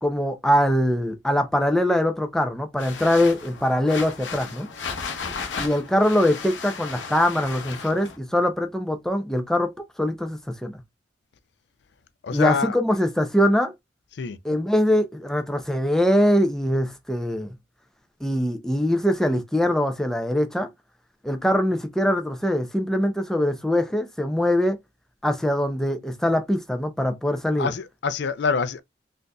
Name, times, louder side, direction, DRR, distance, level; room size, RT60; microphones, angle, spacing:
voice 1, 0.0-4.7 5.6-9.7 10.0-10.8 12.3-13.7 14.4-17.5 18.2-20.7 21.2-24.8 25.2-27.7, left 1 dB, 5° left, 0.4 m, -22 dB
sound 1, 2.8-8.2, left 5 dB, 85° left, 0.8 m, -35 dB
voice 2, 12.2-12.8 14.2-14.4 27.6-28.8, left 5 dB, 70° left, 0.4 m, -25 dB
3.8 x 2.5 x 2.2 m
head